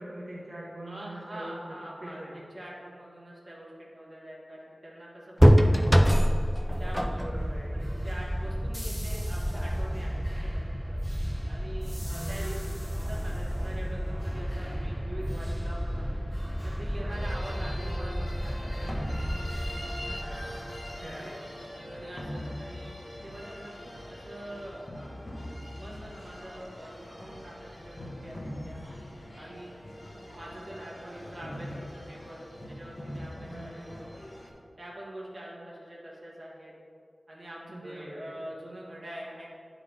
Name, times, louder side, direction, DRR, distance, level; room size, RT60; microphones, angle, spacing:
voice 1, 0.0-2.4 7.1-7.9 12.0-12.5 16.9-17.2 20.0-21.5 33.4-33.9 37.7-38.5, right 1 dB, 75° right, -7 dB, 1.1 m, -43 dB
voice 2, 0.8-6.1 6.8-7.2 7.7-10.5 10.9-11.0 11.5-16.1 16.6-18.7 21.1-21.5 21.9-25.1 25.7-28.8 29.4-29.8 30.3-34.1 34.8-36.7 37.3-39.5, right 1 dB, 45° right, -5 dB, 1.5 m, -44 dB
sound 1, 5.4-21.1, equal, 5° right, 0.3 m, -28 dB
sound 2, 17.1-34.5, left 1 dB, 40° left, 1.2 m, -42 dB
9.8 x 3.8 x 3.4 m, 2.3 s
wide cardioid pair, 75°, 0 cm